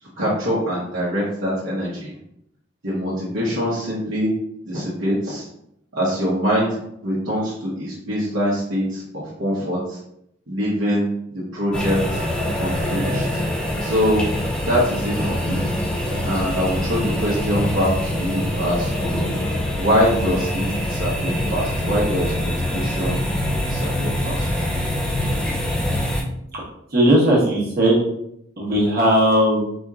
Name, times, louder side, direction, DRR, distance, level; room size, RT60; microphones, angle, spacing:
voice 1, 0.0-2.2 2.8-4.3 4.7-5.5 5.9-10.0 10.5-11.1 11.3-12.2 12.6-13.4 13.8-14.3 14.6-15.6 16.2-19.2 19.7-23.2 23.6-24.5, equal, 70° right, -8 dB, 1.0 m, -24 dB
sound 1, 11.7-26.2, left 1 dB, 5° left, 0.4 m, -24 dB
voice 2, 26.9-28.0 28.6-29.6, equal, 45° right, -4 dB, 1.1 m, -17 dB
4.2 x 2.9 x 2.4 m, 0.76 s
head